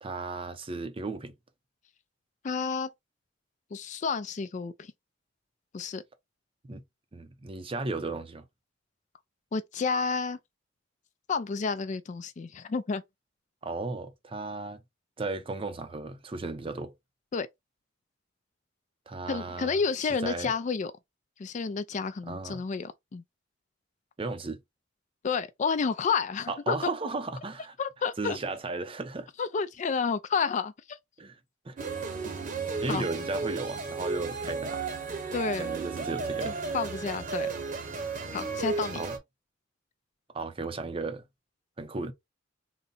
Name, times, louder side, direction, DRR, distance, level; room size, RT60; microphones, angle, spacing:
voice 1, 0.0-1.3 6.6-6.8 7.1-8.4 13.6-14.8 15.2-16.9 19.1-19.8 20.2-20.5 22.3-22.6 24.2-24.6 26.5-27.8 28.2-29.3 31.2-31.4 31.6-31.8 32.8-34.8 35.6-36.5 39.0-39.2 40.3-41.2 41.8-42.1, right 3 dB, 30° right, 0.6 m, -35 dB
voice 2, 2.4-2.9 3.7-4.9 5.7-6.0 9.5-10.4 11.3-13.0 17.3-17.5 19.3-20.9 21.4-23.2 25.2-26.9 27.8-28.4 29.4-31.0 32.9-33.1 35.3-35.8 36.4-37.5 38.3-39.0, left 5 dB, 40° left, 0.4 m, -30 dB
sound 1, 31.8-39.2, right 4 dB, 45° right, 0.9 m, -34 dB
4.0 x 2.1 x 3.8 m
head